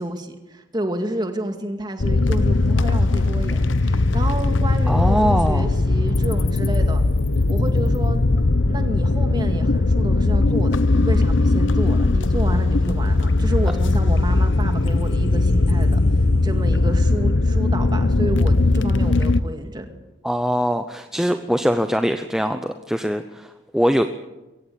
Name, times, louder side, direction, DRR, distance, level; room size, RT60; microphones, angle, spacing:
voice 1, 0.0-7.0 7.5-8.2 8.7-16.0 16.4-19.9, right 1 dB, 20° right, 6 dB, 2.2 m, -30 dB
sound 1, 2.0-19.4, left 2 dB, 85° left, 0.9 m, -19 dB
voice 2, 4.9-5.7 20.2-24.1, equal, 5° right, 7 dB, 0.7 m, -22 dB
23.0 x 17.5 x 8.6 m, 1.1 s
head